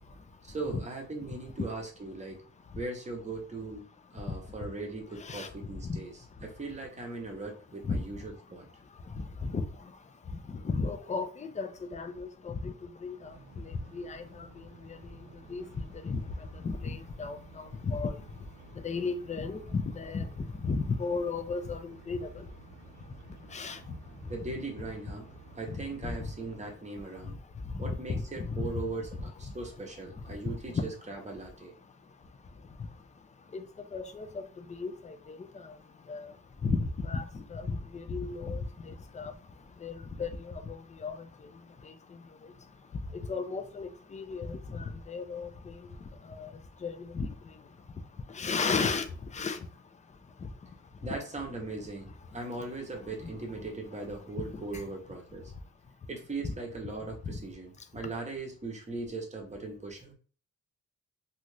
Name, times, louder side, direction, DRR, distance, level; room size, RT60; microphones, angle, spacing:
voice 1, 0.4-2.4 2.7-8.6 24.3-25.3 25.5-27.4 27.8-31.7 51.0-55.5 56.1-60.1, right 3 dB, 25° right, 0.8 m, -39 dB
voice 2, 5.2-5.5 5.8-6.0 7.8-8.2 8.9-18.4 18.7-22.5 23.0-24.0 24.2-24.3 25.7-25.8 26.0-26.3 27.2-28.7 29.5-29.6 30.5-30.8 32.8-32.9 33.5-39.4 39.8-42.5 42.9-47.7 48.3-49.7 50.4-50.8 54.7-54.8 57.3-57.4, left 4 dB, 25° left, 0.4 m, -36 dB
sound 1, 13.2-26.8, right 5 dB, 70° right, 0.6 m, -54 dB
2.7 x 2.4 x 3.2 m
wide cardioid pair, 110°, 30 cm